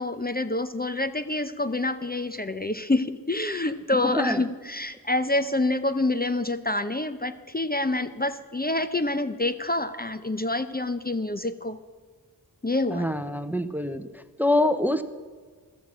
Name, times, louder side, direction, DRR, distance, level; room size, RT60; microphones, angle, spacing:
voice 1, 0.0-11.8 12.6-13.1, left 2 dB, 25° left, 10 dB, 0.7 m, -27 dB
voice 2, 4.0-4.4 12.9-14.1 14.4-15.0, left 1 dB, 5° right, 12 dB, 0.8 m, -25 dB
15.0 x 13.0 x 6.2 m, 1.5 s
wide cardioid pair, 60°, 38 cm